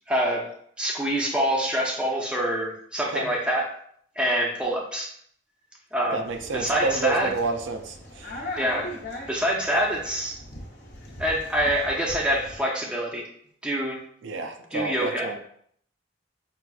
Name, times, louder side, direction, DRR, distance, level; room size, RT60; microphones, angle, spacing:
voice 1, 0.1-0.5 0.8-3.7 4.2-5.1 5.9-6.2 6.5-7.3 8.6-8.9 9.3-10.4 11.2-13.3 13.6-14.0 14.7-15.3, equal, 5° right, -2 dB, 0.6 m, -25 dB
voice 2, 6.1-8.4 14.2-15.4, right 3 dB, 70° right, 5 dB, 0.4 m, -29 dB
sound 1, 6.2-12.6, left 1 dB, 55° left, 0.8 m, -40 dB
5.6 x 2.5 x 2.3 m, 0.64 s
head